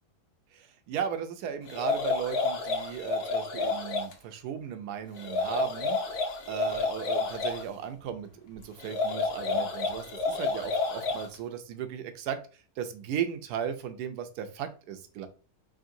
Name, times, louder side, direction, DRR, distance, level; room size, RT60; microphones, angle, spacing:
voice 1, 0.5-6.0 6.5-12.4 12.8-15.3, right 8 dB, 80° right, 9 dB, 1.1 m, -36 dB
sound 1, 1.7-4.1 5.2-7.6 8.8-11.3, left 3 dB, 80° left, 1.3 m, -30 dB
3.7 x 3.3 x 2.6 m, 0.37 s
omnidirectional pair, 1.7 m